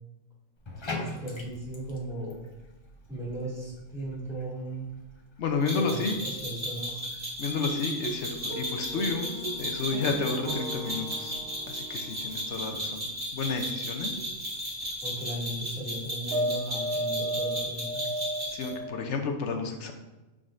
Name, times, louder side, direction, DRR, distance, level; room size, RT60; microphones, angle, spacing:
Bathtub (filling or washing), 0.6-18.9, left 3 dB, 30° left, 0.5 m, -48 dB
voice 1, 0.9-2.4 3.1-4.9 5.7-7.0 12.6-12.7 14.1-14.4 15.0-18.0, right 1 dB, ahead, -7 dB, 2.0 m, -37 dB
voice 2, 5.4-6.2 7.4-9.3 9.6-11.4 11.7-13.0 13.3-14.1 18.5-19.9, left 4 dB, 65° left, 4 dB, 1.0 m, -31 dB
sound 1, 5.7-18.7, equal, 35° right, 2.2 m, -35 dB
sound 2, 8.0-13.1 14.7-14.9 16.3-19.1, right 1 dB, 65° right, 0.8 m, -35 dB
10.0 x 3.8 x 2.5 m, 1.1 s
omnidirectional pair, 1.4 m